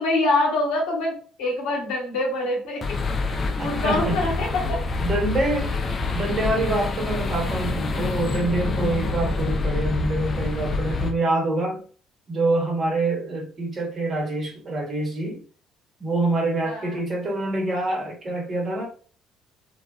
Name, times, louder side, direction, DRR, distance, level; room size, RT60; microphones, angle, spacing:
voice 1, 0.0-3.0 3.5-4.8 16.6-17.0, left 2 dB, 70° left, 1.0 m, -25 dB
sound 1, 2.8-11.1, left 3 dB, 40° left, 0.5 m, -26 dB
voice 2, 3.3-4.2 5.0-5.7 6.1-11.9 12.3-15.4 16.0-18.9, right 2 dB, 45° right, 1.0 m, -26 dB
2.4 x 2.2 x 2.4 m
hypercardioid pair, 55°, 0 cm